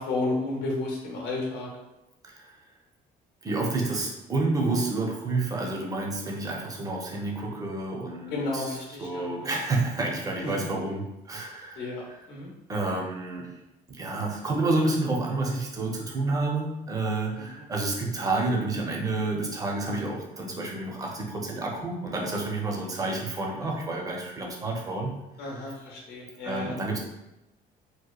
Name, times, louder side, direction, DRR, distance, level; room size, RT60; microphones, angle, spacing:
voice 1, 0.0-1.7 8.3-9.6 10.4-10.5 11.7-12.5 17.4-17.5 25.4-26.7, left 2 dB, 80° left, -2 dB, 0.8 m, -32 dB
voice 2, 3.4-11.9 12.7-13.5 13.9-25.1 25.4-25.5 26.4-27.0, right 2 dB, 20° right, -1 dB, 0.5 m, -29 dB
2.9 x 2.1 x 2.3 m, 0.95 s
cardioid pair, 110°, 17 cm